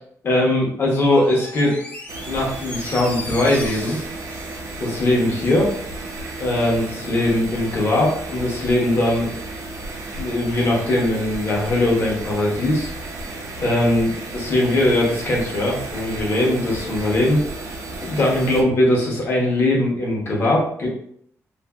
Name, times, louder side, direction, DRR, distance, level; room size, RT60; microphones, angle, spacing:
voice 1, 0.2-1.8 2.2-4.0 4.8-5.7 6.4-9.3 10.2-12.9 13.6-17.4 18.0-20.9, left 1 dB, 45° left, -3 dB, 0.8 m, -20 dB
Door, 1.0-5.6 5.9-6.0, left 2 dB, 25° left, 0.4 m, -37 dB
sound 1, 2.1-18.6, right 2 dB, 70° right, 0.5 m, -33 dB
2.5 x 2.5 x 2.3 m, 0.66 s
wide cardioid pair, 160°, 6 cm